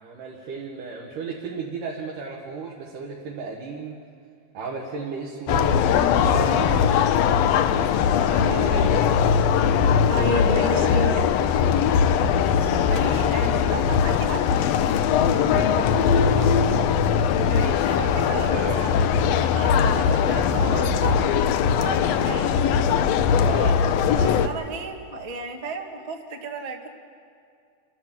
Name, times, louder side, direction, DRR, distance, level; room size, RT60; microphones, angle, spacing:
voice 1, 0.0-4.0 4.5-6.7 10.6-11.3 15.6-17.1 18.3-18.9 23.4-23.8, right 4 dB, 85° right, -2 dB, 3.1 m, -34 dB
sound 1, 5.5-24.5, left 7 dB, 75° left, 1.6 m, -20 dB
voice 2, 8.3-9.0 10.1-11.2 11.8-11.9 12.3-14.4 17.4-18.9 19.4-21.2 21.6-22.6 24.1-26.9, right 2 dB, 30° right, 2 dB, 0.6 m, -32 dB
29.5 x 12.5 x 7.4 m, 2.3 s
omnidirectional pair, 3.6 m